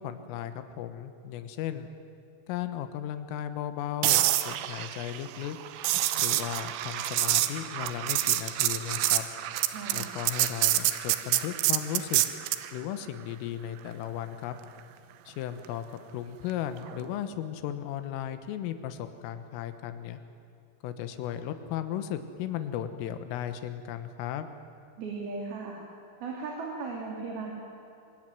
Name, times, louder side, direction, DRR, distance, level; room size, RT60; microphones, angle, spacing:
voice 1, 0.0-1.9 2.5-5.6 6.2-9.2 9.9-12.2 12.7-14.6 15.3-15.9 16.1-20.2 20.8-24.5, left 10 dB, 90° left, 9 dB, 3.8 m, -35 dB
sound 1, 4.0-12.7 16.9-17.1, right 14 dB, 75° right, 3.2 m, -27 dB
voice 2, 9.7-10.1 25.0-25.8 26.2-27.5, right 4 dB, 55° right, -1 dB, 4.3 m, -36 dB
24.5 x 24.5 x 9.2 m, 2.6 s
omnidirectional pair, 5.8 m